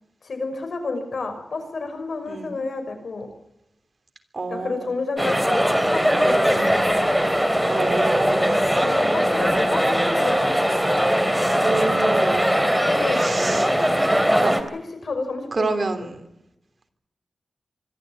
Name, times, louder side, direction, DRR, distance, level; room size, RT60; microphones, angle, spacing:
voice 1, 0.2-3.3 4.5-7.2 8.8-10.7 12.8-13.4 15.0-15.9, left 3 dB, 70° left, 6 dB, 6.1 m, -30 dB
voice 2, 2.3-2.6 4.3-4.9 7.7-8.7 11.6-12.6 13.2-13.7 14.4-14.5 15.5-16.2, right 3 dB, 50° right, 7 dB, 3.2 m, -28 dB
sound 1, 5.2-14.6, equal, 5° right, 2.9 m, -20 dB
25.0 x 13.0 x 9.1 m, 0.86 s
wide cardioid pair, 85°, 0 cm